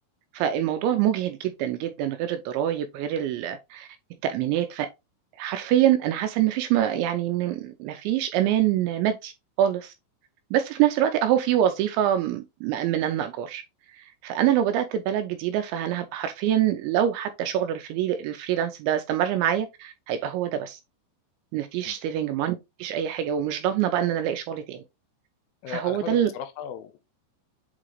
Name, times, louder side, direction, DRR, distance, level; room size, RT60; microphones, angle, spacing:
voice 1, 0.3-3.9 4.2-4.9 5.4-9.3 9.6-9.9 10.5-13.6 13.9-20.8 21.5-24.8 25.7-26.3, right 11 dB, 85° right, 2.7 m, -25 dB
voice 2, 25.6-27.0, left 8 dB, 90° left, 3.3 m, -36 dB
8.3 x 3.8 x 3.1 m
omnidirectional pair, 5.7 m